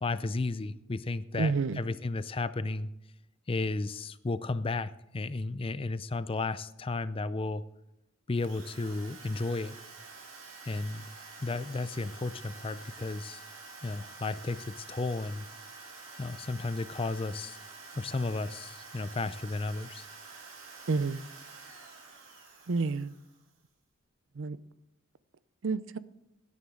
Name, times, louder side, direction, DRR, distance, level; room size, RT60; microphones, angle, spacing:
voice 1, 0.0-2.9 3.5-7.6 8.3-9.8 10.6-11.1 11.4-13.4 13.8-15.5 16.2-17.6 17.9-20.1, left 3 dB, 25° left, 0.5 m, -33 dB
voice 2, 1.4-1.8 20.9-21.2 22.7-23.1 24.4-24.6 25.6-26.0, right 4 dB, 65° right, 0.5 m, -29 dB
Drill, 8.3-23.5, right 4 dB, 90° right, 4.9 m, -48 dB
17.0 x 9.8 x 3.8 m
head